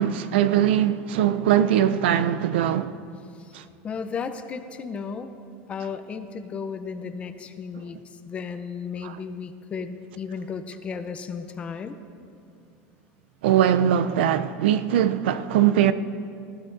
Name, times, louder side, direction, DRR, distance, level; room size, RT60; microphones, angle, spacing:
voice 1, 0.0-3.0 3.5-3.6 9.0-9.2 13.4-15.9, right 10 dB, 90° right, 0.5 m, -21 dB
voice 2, 3.8-5.3 5.7-12.0, left 5 dB, 20° left, 0.6 m, -34 dB
19.5 x 15.0 x 2.6 m
supercardioid pair, 155°, 6 cm